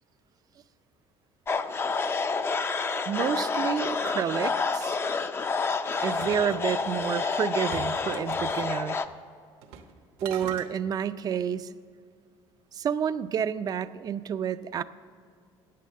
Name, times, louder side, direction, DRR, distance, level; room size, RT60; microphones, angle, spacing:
sound 1, 1.5-9.1, left 4 dB, 25° left, 0.4 m, -29 dB
voice 1, 3.1-5.0 6.0-9.0 10.2-11.7 12.7-14.8, right 8 dB, 35° right, 14 dB, 0.4 m, -29 dB
sound 2, 5.9-7.2 7.7-8.7 9.6-9.9 10.2-10.7, right 7 dB, 80° right, 1.0 m, -43 dB
8.5 x 8.4 x 6.6 m, 2.2 s
cardioid pair, 125°, 10 cm